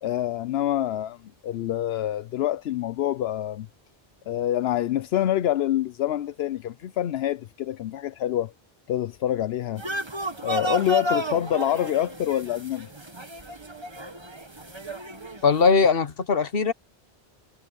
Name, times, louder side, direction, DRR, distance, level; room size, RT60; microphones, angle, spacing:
voice 1, 0.0-3.7 4.3-8.5 8.9-9.8 10.4-12.9, left 12 dB, 85° left, 0.9 m, -26 dB
sound 1, 9.8-15.7, right 1 dB, 25° right, 1.5 m, -32 dB
voice 2, 15.4-16.7, left 5 dB, 65° left, 1.4 m, -20 dB
omnidirectional pair, 1.0 m